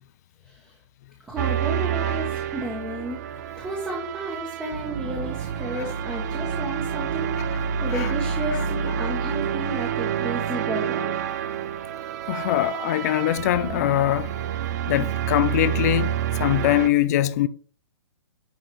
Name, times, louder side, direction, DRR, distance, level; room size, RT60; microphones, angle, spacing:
voice 1, 1.3-3.2 3.5-11.1, right 1 dB, 5° right, 1.3 m, -33 dB
sound 1, 1.4-16.9, right 8 dB, 35° right, 0.6 m, -28 dB
voice 2, 12.3-14.3 14.9-17.5, left 13 dB, 35° left, 0.6 m, -22 dB
10.5 x 3.9 x 4.7 m
hypercardioid pair, 165°, 15 cm